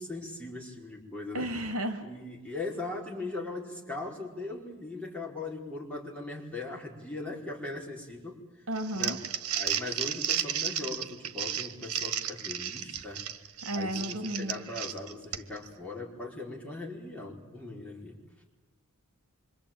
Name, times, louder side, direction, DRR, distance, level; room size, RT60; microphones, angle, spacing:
voice 1, 0.0-1.5 2.0-8.4 8.9-9.2 9.5-13.2 13.7-18.2, left 2 dB, 5° left, -3 dB, 4.9 m, -39 dB
voice 2, 1.3-2.0 8.7-9.2 13.6-14.7, right 1 dB, 70° right, 8 dB, 2.7 m, -33 dB
Crumpling crinkling, 8.8-15.7, right 9 dB, 90° right, 1.4 m, -33 dB
26.5 x 24.5 x 9.0 m, 1.2 s
head